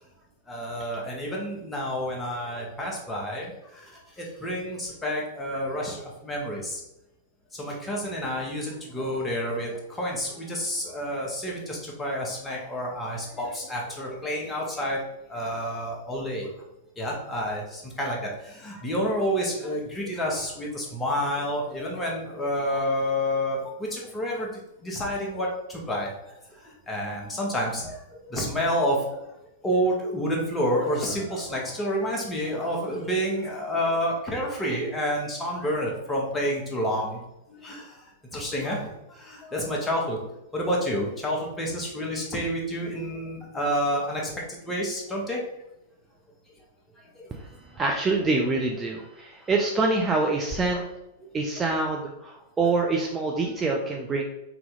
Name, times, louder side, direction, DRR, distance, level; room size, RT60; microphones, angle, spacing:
voice 1, 0.5-6.8 7.5-15.0 15.3-16.5 17.0-24.5 24.8-26.1 26.5-29.2 29.6-37.2 37.5-40.2 40.5-44.3 44.6-45.4 47.1-47.3 50.7-50.8 51.5-51.6, equal, 15° left, -2 dB, 1.2 m, -29 dB
voice 2, 47.3-50.8 51.3-54.2, right 3 dB, 20° right, 0 dB, 0.5 m, -26 dB
3.9 x 2.9 x 3.7 m, 0.89 s
figure-of-eight pair, 95°, 0 cm